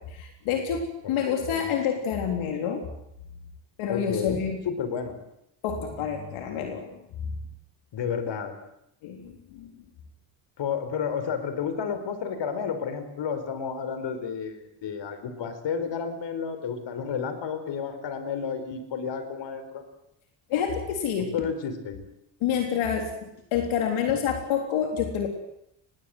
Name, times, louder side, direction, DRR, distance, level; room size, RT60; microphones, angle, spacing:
voice 1, 0.1-2.9 3.8-4.6 5.6-7.0 9.0-9.7 20.5-21.3 22.4-25.3, left 7 dB, 85° left, 3 dB, 3.8 m, -28 dB
voice 2, 1.0-1.7 3.9-4.4 4.6-5.1 7.9-8.5 10.6-19.8 21.3-22.0, left 6 dB, 65° left, 10 dB, 4.8 m, -31 dB
26.0 x 21.0 x 8.0 m, 0.79 s
cardioid pair, 90°, 47 cm